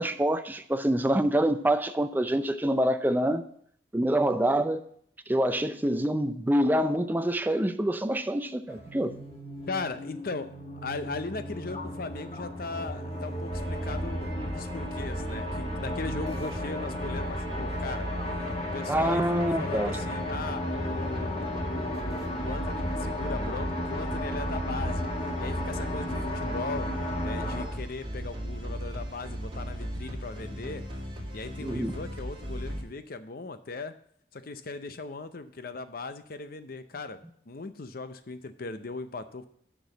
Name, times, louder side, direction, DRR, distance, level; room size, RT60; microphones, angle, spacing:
voice 1, 0.0-3.5 3.9-4.8 5.3-9.2 18.9-20.0 31.6-31.9, right 1 dB, 10° right, 0.5 m, -26 dB
sound 1, 8.7-27.6, left 1 dB, 35° left, 1.4 m, -34 dB
voice 2, 9.7-18.1 18.7-25.0 25.4-26.9 27.2-30.8 31.3-33.9 34.3-37.2 37.5-39.5, left 3 dB, 55° left, 0.6 m, -38 dB
sound 2, 13.5-32.8, equal, 30° right, 2.3 m, -37 dB
6.6 x 6.2 x 7.2 m
head